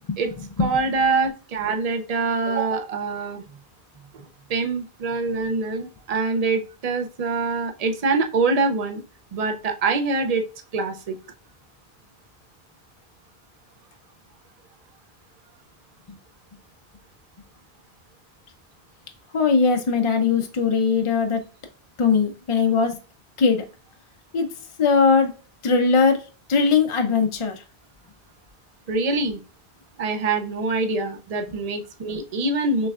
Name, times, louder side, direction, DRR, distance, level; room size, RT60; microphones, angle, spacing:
voice 1, 0.2-3.4 4.1-9.0 9.3-10.4 10.7-11.2 28.9-29.4 30.0-32.9, right 3 dB, 45° right, 6 dB, 0.6 m, -24 dB
voice 2, 19.3-21.4 22.0-23.0 23.4-23.6 24.3-24.5 24.8-25.3 25.6-26.2 26.5-27.6, left 5 dB, 45° left, 5 dB, 0.4 m, -19 dB
6.2 x 3.3 x 2.4 m, 0.36 s
omnidirectional pair, 1.1 m